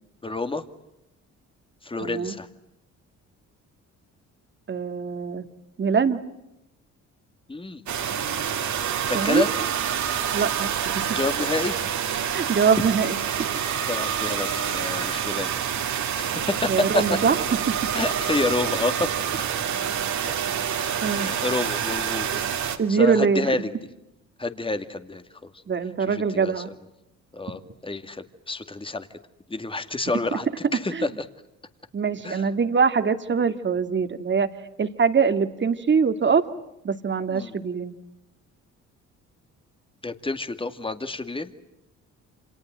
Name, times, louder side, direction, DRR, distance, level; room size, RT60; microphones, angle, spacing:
voice 1, 0.2-0.6 1.8-2.5 7.5-7.8 9.1-9.5 11.1-11.8 13.9-15.5 16.2-16.7 16.9-17.0 17.9-19.1 20.7-22.3 22.9-23.7 24.4-25.5 26.0-26.5 27.3-29.1 29.5-31.2 32.2-32.5 37.3-37.5 40.0-41.5, left 2 dB, 15° left, 9 dB, 2.2 m, -29 dB
voice 2, 2.0-2.3 4.7-5.5 5.8-6.2 9.1-9.5 10.3-11.1 12.3-13.2 16.7-17.4 17.7-17.8 21.0-21.4 22.8-23.5 25.7-26.7 30.9-31.1 31.9-34.5 34.8-36.4 36.8-37.9, right 6 dB, 40° right, 8 dB, 2.3 m, -23 dB
sound 1, 7.9-22.8, right 8 dB, 70° right, 3.1 m, -27 dB
28.5 x 27.0 x 7.6 m, 0.88 s
cardioid pair, 90°, 30 cm